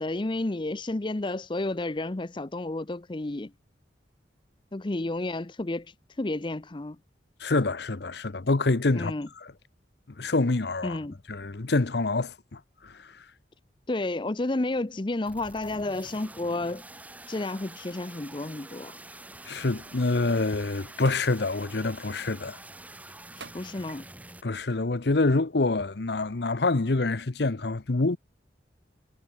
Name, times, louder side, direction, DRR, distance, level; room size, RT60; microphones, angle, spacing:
voice 1, 0.0-3.5 4.7-7.0 8.9-9.3 10.8-11.2 13.9-16.8 17.3-18.9 23.4-24.0, left 2 dB, 25° left, 0.6 m, -31 dB
voice 2, 7.4-9.1 9.4-9.5 10.2-11.0 11.3-12.9 19.5-22.6 24.4-28.2, left 3 dB, 60° left, 0.9 m, -26 dB
sound 1, 15.2-24.4, right 2 dB, 10° right, 2.0 m, -46 dB
sound 2, 21.1-21.4 22.0-22.4 23.4-24.3 25.0-25.2, right 4 dB, 70° right, 7.9 m, -47 dB
head